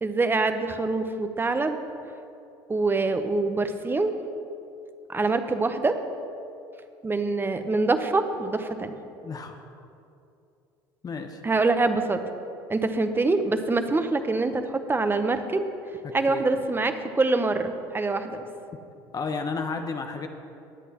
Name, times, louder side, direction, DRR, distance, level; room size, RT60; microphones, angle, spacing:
voice 1, 0.0-1.8 2.7-4.1 5.1-5.9 7.0-8.9 11.4-12.2 12.7-15.7 16.1-18.4, right 3 dB, 20° right, 8 dB, 0.9 m, -25 dB
voice 2, 9.2-9.6 11.0-11.4 16.0-16.4 19.1-20.3, left 4 dB, 35° left, 5 dB, 0.8 m, -32 dB
20.0 x 8.2 x 3.0 m, 2.6 s
hypercardioid pair, 75°, 11 cm